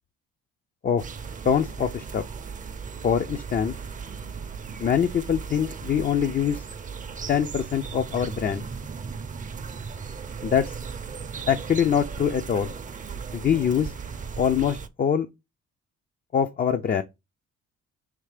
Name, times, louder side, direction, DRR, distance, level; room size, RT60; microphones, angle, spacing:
sound 1, 1.0-14.9, right 5 dB, 25° right, 0.5 m, -37 dB
voice 1, 1.4-2.2 3.0-3.7 4.8-6.6 7.3-8.7 10.4-10.7 11.5-12.7 13.3-13.9 14.4-15.3 16.3-17.0, left 8 dB, 30° left, 0.4 m, -24 dB
3.3 x 3.2 x 4.8 m
cardioid pair, 90°, 30 cm